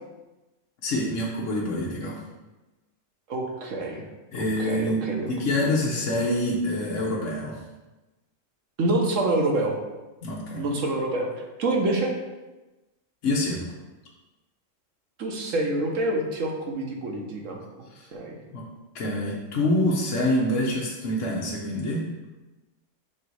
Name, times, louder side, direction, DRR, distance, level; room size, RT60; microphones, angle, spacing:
voice 1, 0.8-2.2 4.3-7.6 10.2-10.7 13.2-13.6 17.9-18.1 18.5-18.6 18.9-22.1, left 1 dB, 70° left, -4 dB, 1.3 m, -26 dB
voice 2, 3.3-4.0 4.6-5.3 5.6-5.8 8.8-9.8 10.5-11.3 11.6-12.1 15.2-17.6 18.1-18.4, right 2 dB, 75° right, 1 dB, 1.4 m, -26 dB
6.1 x 4.1 x 4.7 m, 1.1 s
omnidirectional pair, 1.3 m